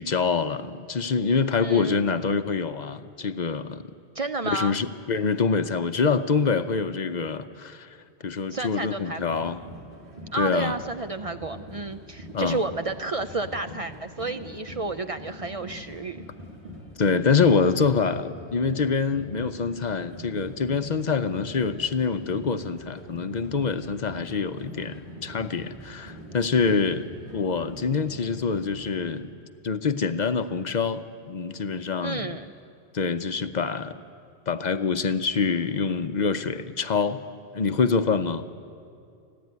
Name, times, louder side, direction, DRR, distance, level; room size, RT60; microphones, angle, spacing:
voice 1, 0.0-3.8 4.4-8.0 8.2-9.6 10.4-10.8 12.3-12.6 17.0-27.1 27.3-29.3 29.6-32.3 32.9-34.0 34.5-37.2 37.5-38.5, left 5 dB, 50° left, 10 dB, 0.7 m, -25 dB
voice 2, 1.6-2.0 4.1-4.8 8.5-9.3 10.3-16.2 32.0-32.5, right 3 dB, 45° right, 9 dB, 0.5 m, -31 dB
sound 1, 9.2-29.1, equal, 30° right, 4.1 m, -43 dB
30.0 x 10.5 x 9.5 m, 2.4 s
omnidirectional pair, 1.1 m